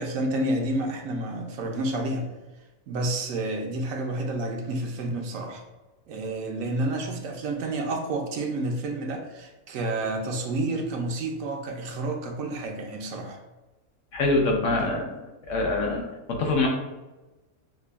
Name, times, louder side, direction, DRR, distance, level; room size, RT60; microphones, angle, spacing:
voice 1, 0.0-2.3 2.9-5.6 6.1-13.4, right 2 dB, 75° right, 3 dB, 0.9 m, -30 dB
voice 2, 14.1-15.1 15.5-16.0 16.3-16.7, left 2 dB, 65° left, 0 dB, 1.0 m, -24 dB
5.8 x 2.2 x 2.2 m, 1.1 s
omnidirectional pair, 1.5 m